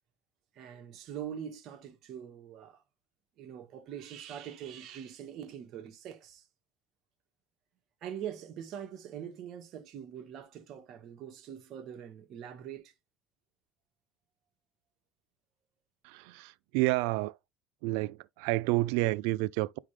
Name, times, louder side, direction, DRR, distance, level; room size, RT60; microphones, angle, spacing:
voice 1, 0.5-2.8 3.4-6.5 8.0-12.9, right 9 dB, 55° right, 1.4 m, -43 dB
voice 2, 16.0-17.4 17.8-19.8, right 21 dB, 85° right, 0.3 m, -30 dB
9.7 x 3.7 x 3.2 m
cardioid pair, 125°, 0 cm